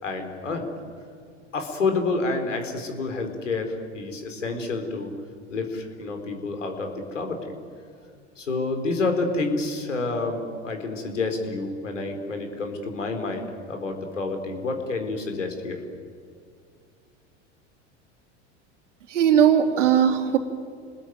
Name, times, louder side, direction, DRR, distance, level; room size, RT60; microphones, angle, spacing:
voice 1, 0.0-0.7 1.5-5.1 5.5-7.5 8.4-15.8, left 3 dB, 90° left, 5 dB, 4.4 m, -29 dB
voice 2, 19.1-20.4, right 9 dB, 80° right, 6 dB, 2.9 m, -18 dB
30.0 x 21.0 x 9.5 m, 2.2 s
hypercardioid pair, 85°, 36 cm